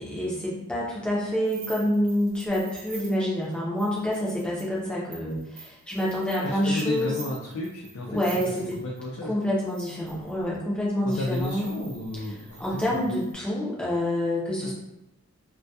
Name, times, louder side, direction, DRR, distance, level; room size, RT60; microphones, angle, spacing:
voice 1, 0.0-7.2 8.1-8.8 9.2-11.7 12.6-14.7, equal, 5° left, -6 dB, 0.5 m, -27 dB
sound 1, 1.4-9.0 9.6-10.4 11.1-13.3, right 3 dB, 45° right, 0.9 m, -46 dB
voice 2, 6.4-8.2 8.8-9.3 11.0-12.6 12.9-13.0 14.6-14.7, left 2 dB, 85° left, -3 dB, 0.4 m, -32 dB
2.2 x 2.2 x 2.6 m, 0.90 s
head